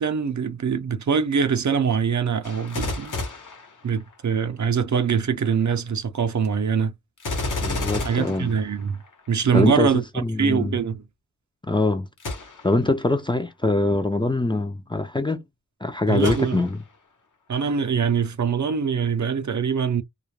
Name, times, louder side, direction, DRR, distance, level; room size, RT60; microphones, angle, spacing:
voice 1, 0.0-3.2 3.8-6.9 8.0-9.0 9.3-11.0 16.1-16.6 17.5-20.0, right 6 dB, 60° right, 0.5 m, -23 dB
Gunshot gunfire, 2.4-4.4 7.2-9.3 12.2-12.8 13.5-13.6 16.2-17.0 17.5-17.6, left 2 dB, 65° left, 1.0 m, -31 dB
voice 2, 7.6-8.5 9.5-9.9 10.2-10.7 11.7-12.1 12.6-15.4 15.8-16.8, left 2 dB, 15° left, 0.4 m, -23 dB
2.3 x 2.1 x 3.0 m
wide cardioid pair, 75°, 33 cm